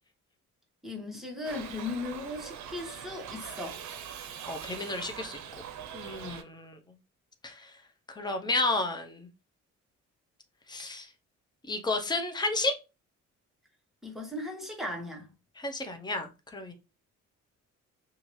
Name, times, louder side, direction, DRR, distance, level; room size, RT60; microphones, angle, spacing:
voice 1, 0.8-3.8 6.2-6.4 14.0-15.3, left 2 dB, ahead, 1.1 m, -37 dB
Shout / Livestock farm animals working animals, 1.4-6.4, right 8 dB, 70° right, 0.6 m, -42 dB
voice 2, 4.5-5.6 5.9-6.8 7.4-7.7 8.2-9.3 10.7-11.1 11.7-12.7 15.6-16.7, left 2 dB, 15° left, 0.6 m, -32 dB
2.8 x 2.5 x 3.1 m
cardioid pair, 90°, 30 cm